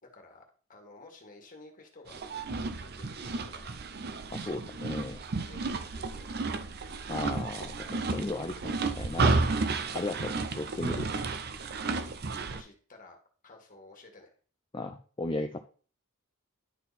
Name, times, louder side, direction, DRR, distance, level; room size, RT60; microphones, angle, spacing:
voice 1, 0.0-2.2 2.8-3.7 5.3-6.7 11.9-12.2 12.5-13.2 13.4-14.3, left 2 dB, 40° left, 2 dB, 1.8 m, -53 dB
sound 1, 2.1-12.6, right 3 dB, 50° right, 0.6 m, -32 dB
voice 2, 4.3-5.2 7.1-9.4 9.9-11.1 14.7-15.6, left 2 dB, 25° left, 4 dB, 0.5 m, -36 dB
11.0 x 3.9 x 4.1 m, 0.40 s
head